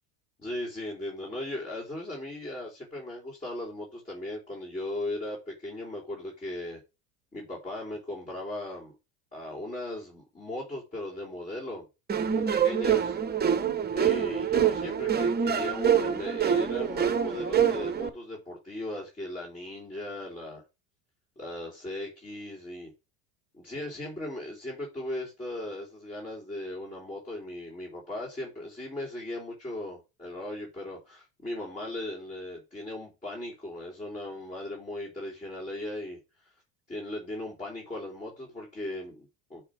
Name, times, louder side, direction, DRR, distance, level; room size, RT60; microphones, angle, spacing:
voice 1, 0.4-6.8 7.3-8.9 9.3-11.9 12.3-13.2 13.9-20.6 21.4-22.9 23.5-36.2 36.9-39.6, left 1 dB, 15° left, 3.2 m, -37 dB
sound 1, 12.1-18.1, right 8 dB, 20° right, 0.8 m, -26 dB
7.3 x 3.5 x 4.8 m
supercardioid pair, 105°, 44 cm